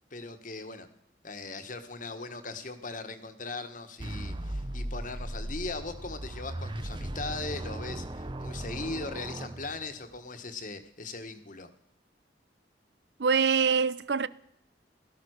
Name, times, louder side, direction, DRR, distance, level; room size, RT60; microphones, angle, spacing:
voice 1, 0.1-0.9 1.2-11.7, left 3 dB, 50° left, 1.6 m, -39 dB
sound 1, 4.0-10.2, right 1 dB, 25° right, 0.8 m, -37 dB
voice 2, 13.2-14.3, right 6 dB, 70° right, 0.6 m, -24 dB
17.0 x 13.0 x 6.6 m
head